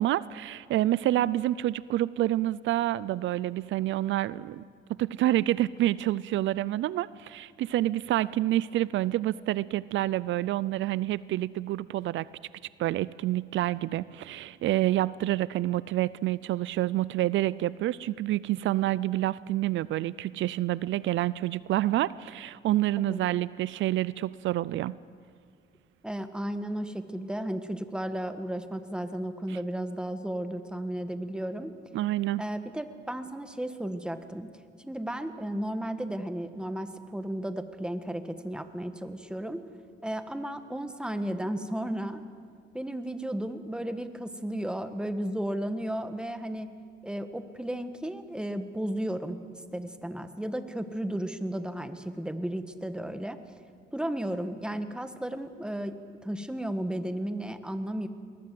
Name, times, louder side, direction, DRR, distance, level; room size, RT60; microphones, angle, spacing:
voice 1, 0.0-4.6 5.0-12.3 12.8-24.9 29.5-29.6 31.9-32.4, right 14 dB, 75° right, 19 dB, 0.5 m, -28 dB
voice 2, 26.0-31.7 32.4-34.5 34.8-39.6 40.0-42.2 42.7-46.7 47.0-49.4 49.7-53.4 53.9-58.1, right 1 dB, 5° right, 9 dB, 1.5 m, -34 dB
21.5 x 20.0 x 7.7 m, 2.2 s
cardioid pair, 90°, 20 cm